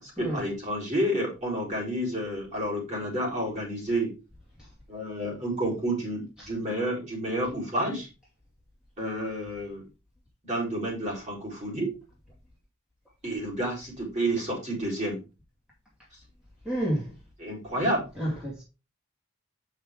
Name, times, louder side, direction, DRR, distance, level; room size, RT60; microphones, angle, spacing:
voice 1, 0.0-4.1 4.9-8.1 9.0-9.9 10.4-11.9 13.2-15.2 17.4-18.0, right 1 dB, 30° right, 4.2 m, -30 dB
voice 2, 16.7-17.1 18.2-18.6, equal, 5° right, 2.2 m, -30 dB
8.5 x 5.7 x 3.7 m
head